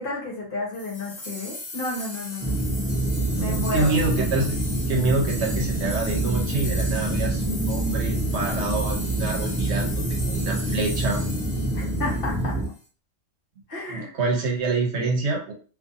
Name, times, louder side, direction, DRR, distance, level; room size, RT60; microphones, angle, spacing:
voice 1, 0.0-2.5 3.4-3.9 11.7-12.6 13.7-14.1, left 2 dB, 50° left, -2 dB, 1.0 m, -31 dB
sound 1, 0.7-12.7, left 2 dB, 35° left, 0.7 m, -38 dB
sound 2, 2.4-12.7, right 1 dB, 20° right, 0.4 m, -26 dB
voice 2, 3.4-4.6 4.9-11.2 13.9-15.5, right 3 dB, 65° right, 1 dB, 0.9 m, -26 dB
2.5 x 2.5 x 2.5 m, 0.39 s
omnidirectional pair, 1.3 m